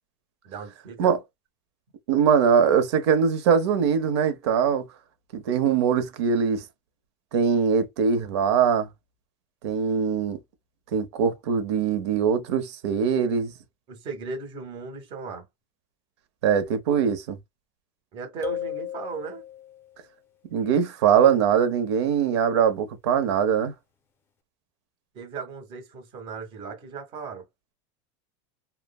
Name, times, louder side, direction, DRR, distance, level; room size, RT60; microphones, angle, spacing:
voice 1, 0.4-1.1 13.9-15.5 18.1-19.4 25.1-27.5, right 5 dB, 40° right, 1.1 m, -37 dB
voice 2, 2.1-4.8 5.3-6.6 7.3-8.9 9.6-10.4 10.9-13.5 16.4-17.4 20.5-23.7, right 7 dB, 90° right, 0.8 m, -22 dB
sound 1, 18.4-19.9, left 10 dB, 15° left, 0.4 m, -34 dB
3.2 x 2.0 x 2.2 m
supercardioid pair, 160°, 14 cm